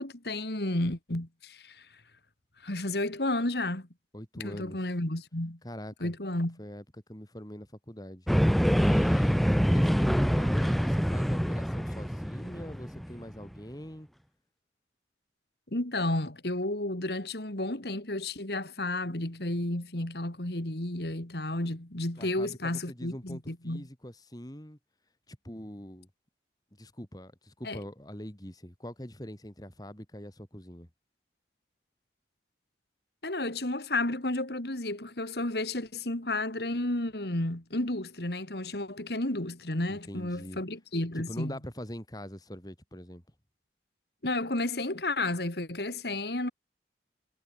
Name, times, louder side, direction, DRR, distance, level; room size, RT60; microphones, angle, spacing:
voice 1, 0.0-1.9 2.6-3.9 4.4-5.6 6.0-6.6 15.7-23.9 27.6-27.8 33.2-41.6 44.2-46.5, left 2 dB, 65° left, 2.6 m, -32 dB
voice 2, 4.1-4.8 5.6-6.1 6.6-8.3 8.7-14.1 22.2-24.8 25.3-26.1 26.8-30.9 39.9-40.6 41.1-43.2, equal, 20° left, 3.4 m, -43 dB
sound 1, 8.3-13.6, equal, ahead, 0.7 m, -25 dB
head